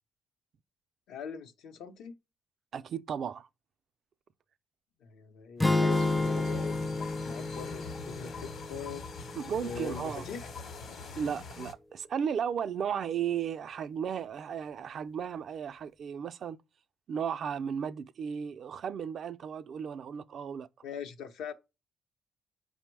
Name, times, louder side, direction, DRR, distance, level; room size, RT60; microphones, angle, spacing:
voice 1, 1.1-2.2 5.0-9.0 9.5-10.5 20.8-21.5, left 6 dB, 85° left, 0.7 m, -42 dB
voice 2, 2.7-3.5 9.4-10.2 11.2-16.6 17.1-20.7, right 7 dB, 60° right, 0.3 m, -35 dB
sound 1, 5.6-9.8, left 2 dB, 5° left, 0.4 m, -31 dB
sound 2, 5.9-11.7, left 4 dB, 60° left, 0.9 m, -43 dB
5.2 x 2.1 x 4.5 m
cardioid pair, 90°, 0 cm